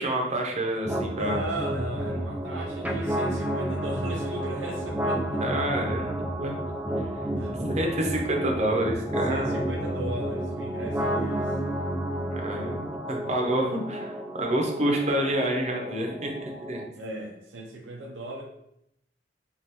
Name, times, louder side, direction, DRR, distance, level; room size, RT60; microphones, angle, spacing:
voice 1, 0.0-1.4 5.4-6.5 7.5-9.7 12.3-16.8, right 1 dB, 40° right, 1 dB, 0.7 m, -28 dB
sound 1, 0.8-16.8, right 1 dB, 10° right, 0.4 m, -31 dB
voice 2, 1.1-5.4 6.4-6.8 7.4-7.6 9.3-11.5 16.9-18.4, right 1 dB, 90° right, -1 dB, 0.6 m, -36 dB
5.2 x 2.5 x 2.9 m, 0.78 s
head